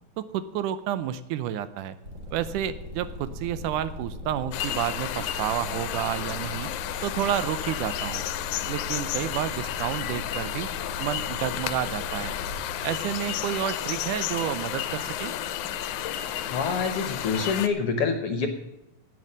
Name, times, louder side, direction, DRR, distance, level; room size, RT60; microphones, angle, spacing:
voice 1, 0.2-2.0 2.3-6.7 7.0-8.2 8.7-10.7 11.0-12.4 12.8-15.3, right 11 dB, 90° right, 13 dB, 2.2 m, -30 dB
sound 1, 2.0-17.6, left 1 dB, 30° right, 1.8 m, -40 dB
sound 2, 4.5-17.7, left 12 dB, 80° left, 2.0 m, -32 dB
voice 2, 16.5-18.5, left 5 dB, 60° left, 7 dB, 1.6 m, -26 dB
9.4 x 8.8 x 8.6 m, 0.92 s
omnidirectional pair, 3.6 m